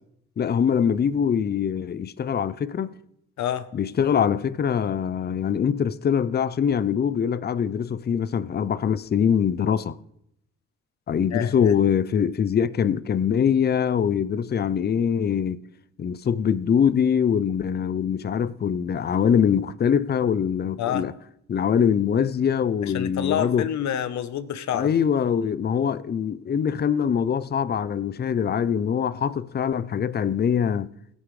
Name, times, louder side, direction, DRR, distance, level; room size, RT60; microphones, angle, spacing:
voice 1, 0.4-2.9 3.7-10.0 11.1-15.6 16.0-21.1 21.5-23.7 24.7-30.9, left 7 dB, 35° left, 0.5 m, -23 dB
voice 2, 11.3-11.7 20.8-21.1 22.8-24.9, left 10 dB, 65° left, 0.9 m, -28 dB
17.0 x 9.5 x 3.2 m
cardioid pair, 90°, 30 cm